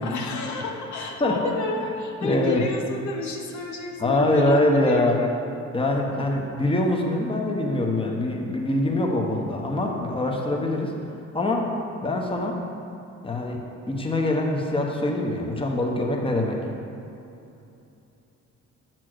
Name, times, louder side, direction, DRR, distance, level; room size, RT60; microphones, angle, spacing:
voice 1, 0.0-5.4 6.1-6.3, left 3 dB, 75° left, 1 dB, 0.9 m, -31 dB
voice 2, 2.2-2.6 4.0-5.2 5.7-10.9 11.3-11.7 12.0-12.5 13.2-13.6 13.9-16.6, left 1 dB, 15° left, 0 dB, 1.1 m, -24 dB
7.4 x 4.5 x 6.3 m, 2.8 s
cardioid pair, 90°, 30 cm